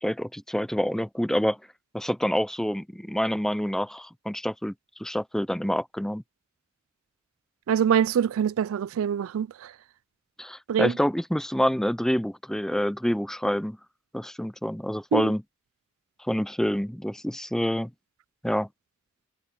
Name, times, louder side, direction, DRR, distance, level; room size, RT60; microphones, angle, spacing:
voice 1, 0.0-1.6 1.9-4.7 5.0-6.2 10.4-13.8 14.1-15.4 16.3-17.9 18.4-18.7, equal, ahead, 0.5 m, -27 dB
voice 2, 7.7-9.7 10.7-10.9 15.1-15.2, right 8 dB, 75° right, 0.3 m, -24 dB
head